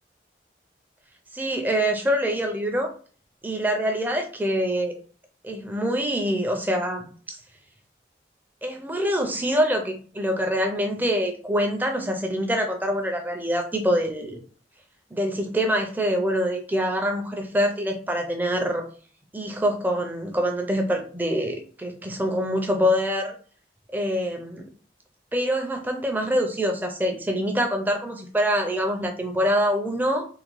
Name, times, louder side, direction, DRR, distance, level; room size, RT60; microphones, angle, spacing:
voice 1, 1.3-2.9 3.4-4.9 5.4-7.4 8.6-14.4 15.1-18.8 19.3-23.3 23.9-24.7 25.3-30.3, equal, 10° right, 3 dB, 0.4 m, -25 dB
3.5 x 2.1 x 3.0 m, 0.42 s
head